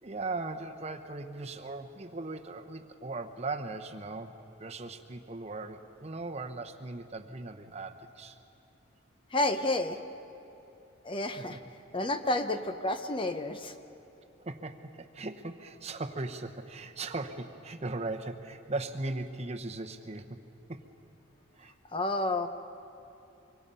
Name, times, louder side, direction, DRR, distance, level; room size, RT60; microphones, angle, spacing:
voice 1, 0.0-8.4 11.4-11.6 14.4-20.4 20.7-20.8 21.6-21.7, right 2 dB, 30° right, 6 dB, 0.9 m, -38 dB
voice 2, 9.3-10.0 11.0-11.6 11.9-13.7 21.9-22.5, left 2 dB, 25° left, 8 dB, 0.8 m, -30 dB
25.0 x 24.5 x 5.5 m, 3.0 s
head